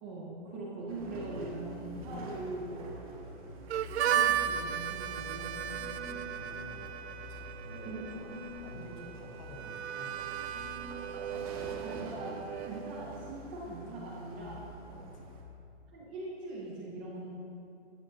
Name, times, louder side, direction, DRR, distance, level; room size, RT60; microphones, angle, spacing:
voice 1, 0.0-2.9 4.0-5.8 7.8-8.2 8.7-8.9 11.8-14.7 15.9-17.3, right 2 dB, 10° right, -4 dB, 0.5 m, -42 dB
sound 1, 0.9-15.4, equal, 30° right, 1.4 m, -46 dB
Harmonica, 3.7-13.3, right 10 dB, 70° right, 0.6 m, -35 dB
sound 2, 5.8-6.4 8.1-8.6 10.5-11.2, left 1 dB, 50° left, 2.3 m, -48 dB
voice 2, 6.1-6.9 7.3-11.1 14.9-15.2, left 2 dB, 20° left, 2 dB, 0.9 m, -52 dB
14.5 x 13.0 x 2.7 m, 2.7 s
hypercardioid pair, 170°, 34 cm